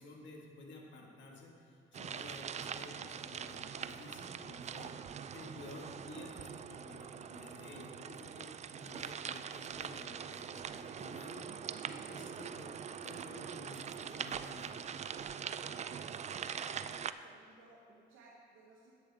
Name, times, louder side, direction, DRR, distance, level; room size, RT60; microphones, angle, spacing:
voice 1, 0.0-4.9 5.3-11.5 11.9-12.7 13.0-14.7, left 2 dB, 70° left, 0 dB, 1.7 m, -52 dB
sound 1, 1.9-17.1, right 7 dB, 35° right, 0.4 m, -43 dB
voice 2, 4.7-5.1 16.3-18.9, right 3 dB, 90° right, -3 dB, 1.1 m, -60 dB
10.5 x 9.2 x 3.5 m, 2.5 s
cardioid pair, 90°, 20 cm